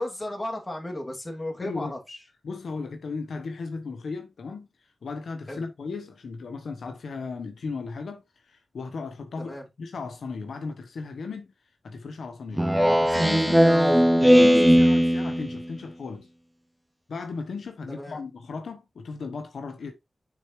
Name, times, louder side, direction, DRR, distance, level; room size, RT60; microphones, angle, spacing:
voice 1, 0.0-2.2 5.5-5.6 9.4-9.6 12.5-12.7 13.8-14.0 17.9-18.2, left 1 dB, 30° left, 2.6 m, -35 dB
voice 2, 1.6-1.9 2.4-4.7 5.0-11.5 11.8-12.7 13.0-16.3 17.1-19.9, left 4 dB, 85° left, 1.1 m, -36 dB
Speech synthesizer, 12.6-15.6, equal, 5° right, 0.5 m, -18 dB
7.0 x 6.4 x 3.1 m
cardioid pair, 65°, 0 cm